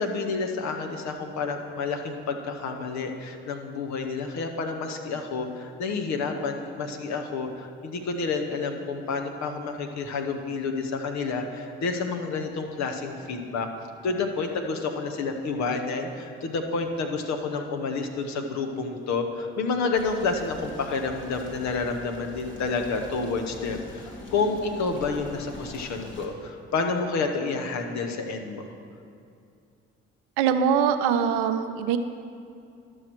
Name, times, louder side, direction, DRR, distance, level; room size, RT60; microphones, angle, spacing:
voice 1, 0.0-13.7 14.0-28.7, left 4 dB, 65° left, 4 dB, 1.0 m, -29 dB
sound 1, 19.9-26.3, left 1 dB, 40° left, 1.8 m, -43 dB
voice 2, 30.4-32.0, right 7 dB, 80° right, 9 dB, 0.6 m, -23 dB
11.5 x 6.4 x 4.5 m, 2.4 s
hypercardioid pair, 45°, 30 cm